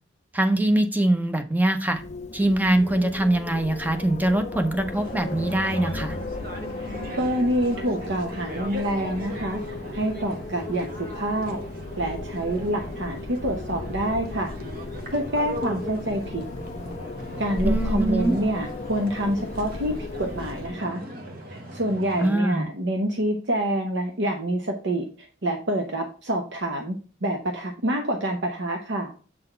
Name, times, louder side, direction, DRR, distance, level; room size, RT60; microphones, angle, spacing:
voice 1, 0.3-2.0 2.3-6.1 17.6-18.4 22.2-22.7, right 1 dB, 10° right, 7 dB, 0.6 m, -23 dB
Wind, 1.9-20.9, left 2 dB, 35° left, 0.4 m, -35 dB
sound 1, 4.9-22.3, equal, 50° right, 1.1 m, -38 dB
voice 2, 6.8-11.6 12.0-14.5 15.1-16.4 17.4-21.0 21.5-29.1, right 1 dB, 75° right, 3 dB, 0.9 m, -27 dB
7.6 x 4.0 x 4.4 m, 0.38 s
head